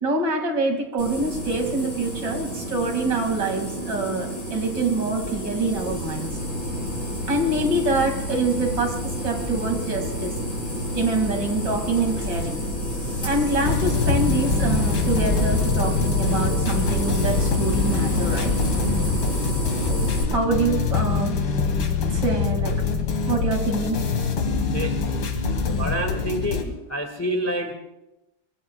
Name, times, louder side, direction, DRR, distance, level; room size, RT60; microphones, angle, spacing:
voice 1, 0.0-6.3 7.3-10.3 10.9-12.6 13.2-18.5 20.3-21.4 22.1-22.7 23.3-24.0, right 3 dB, 55° right, 3 dB, 3.0 m, -25 dB
sound 1, 1.0-20.2, equal, 45° left, 6.3 m, -28 dB
sound 2, 13.6-26.6, left 5 dB, 80° left, 2.5 m, -25 dB
voice 2, 25.8-27.7, right 1 dB, 10° left, 3 dB, 1.7 m, -27 dB
24.0 x 24.0 x 2.4 m, 0.94 s
omnidirectional pair, 2.2 m